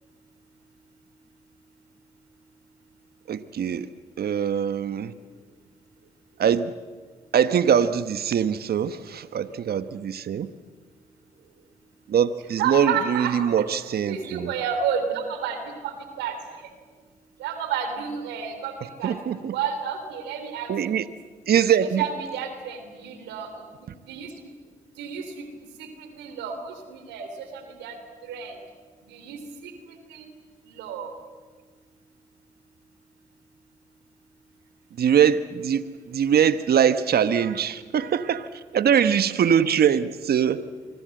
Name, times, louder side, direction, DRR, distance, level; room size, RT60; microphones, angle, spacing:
voice 1, 3.3-3.9 4.2-5.1 6.4-6.7 7.3-10.5 12.1-14.5 19.0-19.5 20.7-21.0 21.5-22.0 35.0-38.5 38.7-40.6, right 8 dB, 65° right, 12 dB, 1.2 m, -22 dB
voice 2, 12.6-13.6 14.1-15.6 15.8-16.3 17.4-18.7 19.0-19.1 19.5-20.7 21.8-23.5 24.0-24.3 25.0-25.5 25.8-27.9 28.2-28.5 29.1-29.7 30.1-30.2 30.7-31.1, right 7 dB, 85° right, 7 dB, 3.4 m, -30 dB
25.0 x 25.0 x 7.8 m, 1.5 s
supercardioid pair, 45°, 17 cm